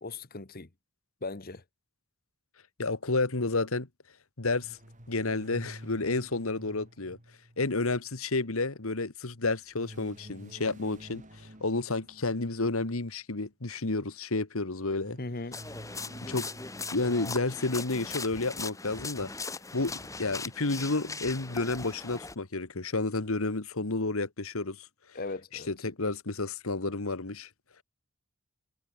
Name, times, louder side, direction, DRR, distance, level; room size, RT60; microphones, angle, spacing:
voice 1, 0.0-0.7 1.2-1.6 15.2-15.6 25.1-25.9, left 3 dB, 45° left, 1.3 m, -38 dB
voice 2, 2.8-3.9 4.4-4.8 5.1-7.2 7.6-15.2 16.2-16.5 16.9-24.9 25.7-27.5, left 3 dB, 80° left, 1.7 m, -31 dB
sound 1, 4.6-8.1 9.7-12.8 14.9-17.2, equal, 35° right, 7.0 m, -50 dB
sound 2, 15.5-22.3, left 4 dB, 15° left, 1.4 m, -39 dB
head